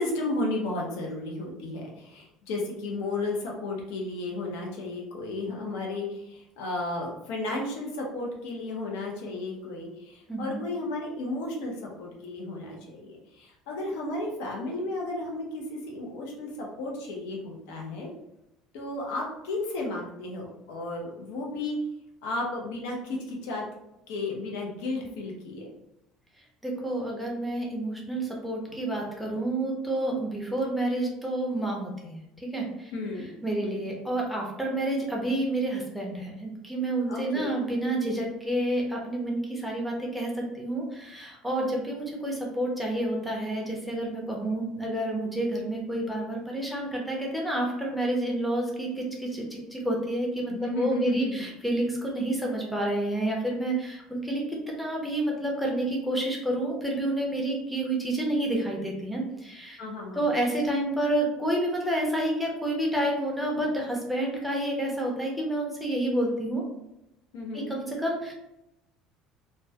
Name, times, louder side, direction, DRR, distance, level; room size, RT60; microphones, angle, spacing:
voice 1, 0.0-18.1 18.7-21.8 22.2-23.6 24.1-25.7 28.7-28.8 32.9-33.3 33.6-33.8 37.1-37.5 50.5-51.5 59.8-60.3 67.3-67.8, left 2 dB, 90° left, -1 dB, 0.6 m, -33 dB
voice 2, 10.3-10.6 26.6-32.9 33.4-59.8 60.2-66.6 67.5-68.3, right 1 dB, ahead, -2 dB, 0.4 m, -29 dB
2.2 x 2.1 x 2.6 m, 0.87 s
cardioid pair, 180°, 0 cm